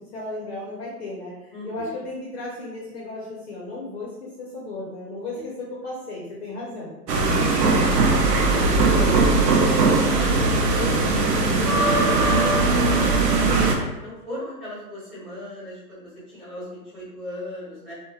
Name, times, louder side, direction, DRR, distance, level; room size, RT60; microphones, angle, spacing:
voice 1, 0.0-10.0, left 2 dB, 40° left, -4 dB, 0.6 m, -35 dB
voice 2, 1.5-2.1 7.2-7.5 8.1-8.6 9.6-10.9 11.3-17.9, left 1 dB, ahead, -9 dB, 0.9 m, -36 dB
sound 1, 7.1-13.8, right 3 dB, 80° right, 0.6 m, -19 dB
2.8 x 2.1 x 2.3 m, 1.0 s
hypercardioid pair, 130°, 48 cm